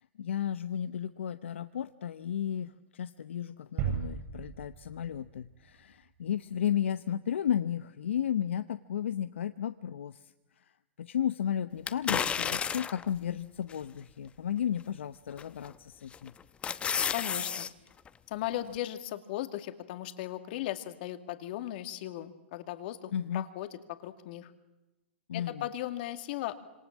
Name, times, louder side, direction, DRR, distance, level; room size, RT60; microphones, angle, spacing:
voice 1, 0.2-10.2 11.0-16.3 23.1-23.4 25.3-25.5, left 9 dB, 80° left, 12 dB, 0.8 m, -33 dB
sound 1, 3.8-5.7 6.1-6.2, right 8 dB, 45° right, 7.7 m, -36 dB
sound 2, 11.9-13.1 13.7-13.8 15.4-15.7 16.1-17.7 18.1-18.2, left 7 dB, 20° left, 1.0 m, -31 dB
voice 2, 17.1-17.7 18.3-24.5 25.3-26.6, left 13 dB, 55° left, 9 dB, 2.3 m, -37 dB
26.5 x 26.0 x 7.4 m, 1.0 s
hypercardioid pair, 125°, 6 cm